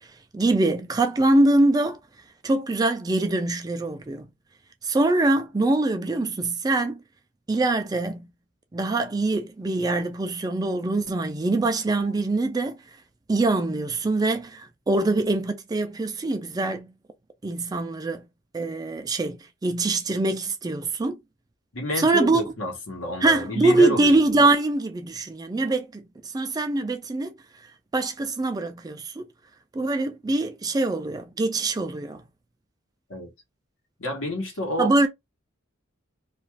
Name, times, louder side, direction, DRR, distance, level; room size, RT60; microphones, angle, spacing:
voice 1, 0.3-2.0 2.4-4.3 4.8-7.0 7.5-8.3 8.7-12.8 13.3-16.9 17.4-18.2 18.5-21.2 22.0-22.4 23.2-27.3 27.9-29.3 29.7-32.2 34.8-35.1, right 2 dB, 20° right, 0.3 m, -23 dB
voice 2, 21.7-24.4 33.1-33.3 34.0-34.9, equal, 75° left, 1.1 m, -29 dB
2.5 x 2.3 x 3.0 m
head